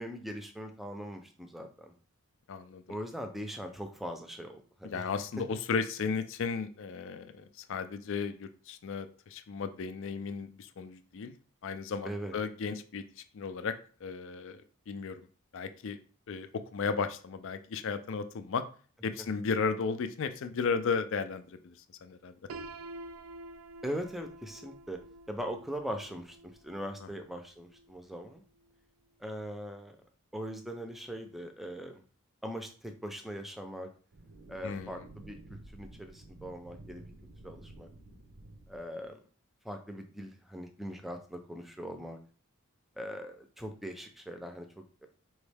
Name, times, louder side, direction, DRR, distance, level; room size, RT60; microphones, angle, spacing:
voice 1, 0.0-1.9 2.9-5.0 12.0-12.4 23.8-25.0 25.3-26.4 26.6-28.4 29.2-30.0 30.3-32.0 32.4-33.9 34.5-37.1 37.4-37.9 38.7-39.2 39.6-42.2 43.0-45.1, equal, ahead, 5 dB, 0.5 m, -41 dB
voice 2, 2.5-2.8 4.8-11.3 11.6-13.8 14.0-15.3 15.5-16.0 16.3-18.7 19.0-21.7 22.0-22.3 34.6-35.1, left 5 dB, 60° left, 10 dB, 0.4 m, -35 dB
Piano, 22.5-28.3, right 2 dB, 65° right, 0.4 m, -49 dB
sound 1, 34.1-39.1, right 2 dB, 90° right, 0.9 m, -51 dB
4.5 x 3.1 x 3.4 m, 0.40 s
head